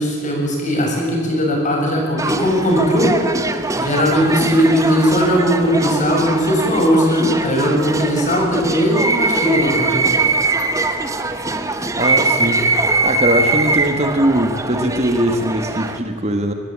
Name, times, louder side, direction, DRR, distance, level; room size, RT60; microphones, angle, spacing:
voice 1, 0.0-3.1 3.8-10.0, equal, 35° left, -1 dB, 6.8 m, -18 dB
sound 1, 2.2-16.0, right 3 dB, 15° right, 1.1 m, -21 dB
voice 2, 12.0-12.7 13.0-16.5, right 1 dB, 30° right, 6 dB, 1.5 m, -20 dB
24.0 x 19.5 x 8.8 m, 2.4 s
head